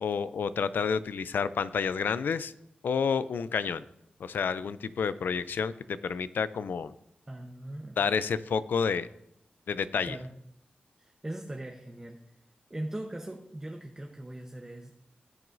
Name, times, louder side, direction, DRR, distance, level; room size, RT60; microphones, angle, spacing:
voice 1, 0.0-2.5 2.8-3.8 4.2-6.9 8.0-9.1 9.7-10.2, left 6 dB, 85° left, 15 dB, 0.4 m, -29 dB
voice 2, 7.3-8.0 10.0-10.3 11.0-12.2 12.7-15.0, right 1 dB, 20° right, 2 dB, 0.9 m, -40 dB
17.0 x 6.2 x 2.6 m, 0.79 s
wide cardioid pair, 80°, 3 cm